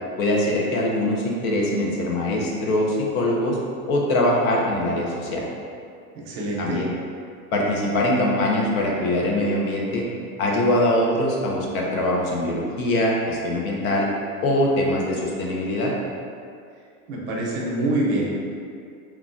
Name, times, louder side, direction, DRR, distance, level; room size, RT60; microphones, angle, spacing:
voice 1, 0.2-3.6 3.9-5.4 6.6-6.9 7.5-10.0 10.4-14.1 14.4-15.9, left 1 dB, 80° left, -2 dB, 0.7 m, -22 dB
voice 2, 6.1-6.8 17.0-18.3, right 1 dB, 40° right, -4 dB, 0.5 m, -25 dB
3.1 x 2.3 x 2.5 m, 2.3 s
supercardioid pair, 175°, 41 cm